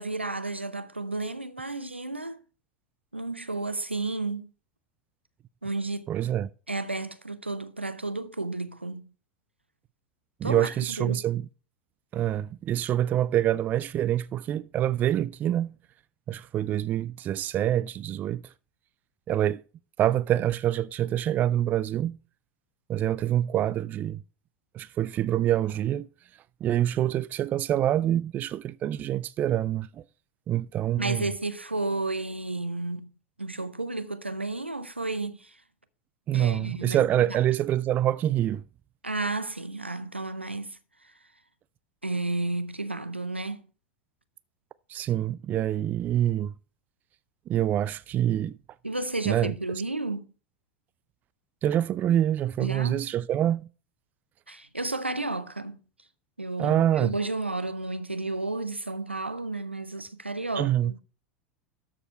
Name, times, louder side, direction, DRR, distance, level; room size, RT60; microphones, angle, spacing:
voice 1, 0.0-2.4 3.1-4.5 5.6-6.1 6.7-9.0 10.4-11.2 31.0-33.1 33.4-35.6 36.3-37.4 39.0-40.8 42.0-43.6 48.8-50.3 52.6-53.0 54.5-55.8 56.4-60.9, right 2 dB, 90° right, 0.7 m, -32 dB
voice 2, 6.1-6.5 10.4-11.5 12.1-15.8 16.3-18.4 19.3-19.6 20.0-22.2 22.9-24.2 24.7-26.1 26.6-30.0 30.5-31.3 36.3-38.6 44.9-46.5 47.5-48.6 49.3-49.5 51.6-53.7 56.6-57.1 60.6-60.9, right 11 dB, 30° right, 0.4 m, -26 dB
13.0 x 5.0 x 4.4 m
figure-of-eight pair, 85°, 6 cm